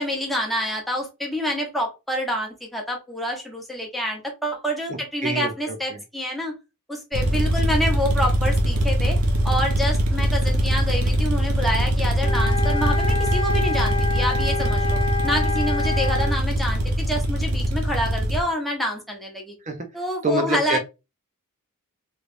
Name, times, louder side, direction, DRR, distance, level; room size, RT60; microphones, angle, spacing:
voice 1, 0.0-6.6 6.9-9.2 9.4-19.5 19.9-20.8, equal, ahead, 1.0 m, -27 dB
voice 2, 5.2-6.0 19.6-19.8 20.2-20.8, right 2 dB, 35° right, 0.7 m, -26 dB
sound 1, 7.1-18.4, right 1 dB, 80° right, 1.0 m, -22 dB
sound 2, 12.2-16.4, left 4 dB, 25° left, 0.8 m, -28 dB
3.2 x 3.1 x 2.6 m
head